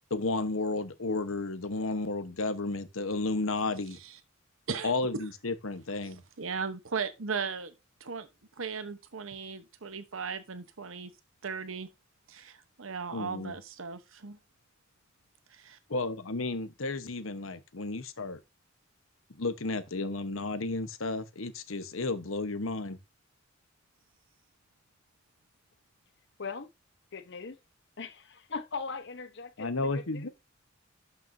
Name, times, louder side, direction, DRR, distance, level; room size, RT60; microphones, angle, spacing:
voice 1, 0.1-4.0 4.8-6.2 13.1-13.5 15.9-18.4 19.4-23.0 29.6-30.3, left 3 dB, 85° left, 1.1 m, -32 dB
voice 2, 4.7-5.2 6.0-7.7 8.0-8.3 8.6-11.1 11.4-11.9 12.3-14.4, right 5 dB, 80° right, 1.0 m, -37 dB
voice 3, 26.4-26.7 27.1-27.6 28.0-30.3, left 4 dB, 60° left, 1.0 m, -40 dB
12.0 x 5.8 x 2.7 m
head